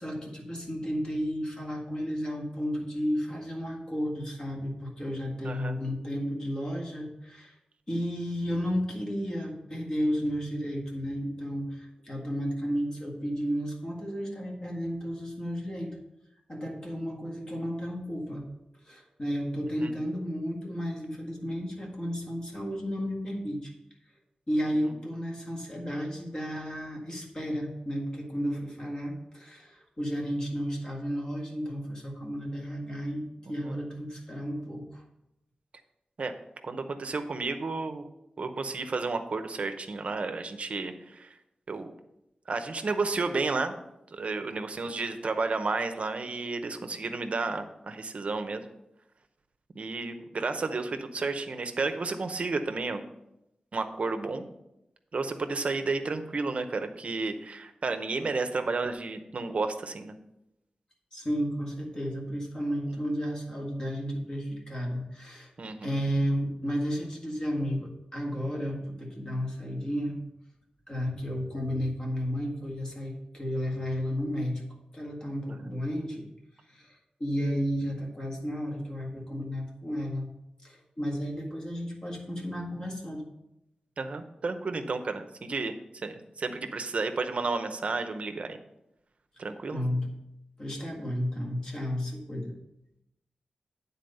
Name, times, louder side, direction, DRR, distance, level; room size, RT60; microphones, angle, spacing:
voice 1, 0.0-7.5 7.9-15.9 16.5-18.5 18.8-23.7 24.5-35.0 61.1-65.5 65.8-70.2 70.9-74.6 74.9-76.3 76.7-80.3 80.6-83.2 89.7-90.1 90.6-92.5, equal, 30° left, -1 dB, 1.8 m, -33 dB
voice 2, 33.5-33.8 36.2-36.3 36.6-38.0 38.4-41.3 41.7-41.9 42.5-43.7 44.1-48.6 49.7-53.0 53.7-54.5 55.1-60.1 65.6-65.9 84.0-88.6 89.4-90.0, right 3 dB, 55° right, 8 dB, 0.7 m, -32 dB
9.3 x 4.1 x 5.4 m, 0.87 s
wide cardioid pair, 135°, 3 cm